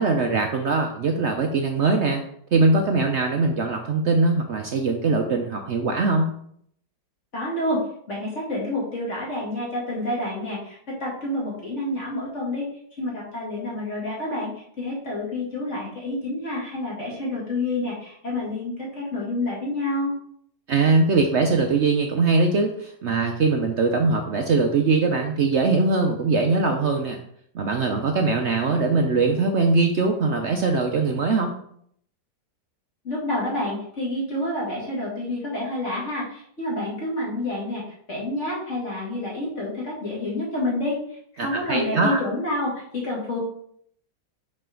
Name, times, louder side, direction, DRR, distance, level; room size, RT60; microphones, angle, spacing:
voice 1, 0.0-2.2 2.5-6.3 20.7-27.2 27.5-31.5 41.4-42.2, right 3 dB, 65° right, 3 dB, 0.6 m, -21 dB
voice 2, 7.3-7.8 8.1-12.7 13.0-20.2 33.0-43.4, left 1 dB, 40° left, -4 dB, 2.4 m, -28 dB
5.9 x 5.4 x 3.7 m, 0.67 s
omnidirectional pair, 1.9 m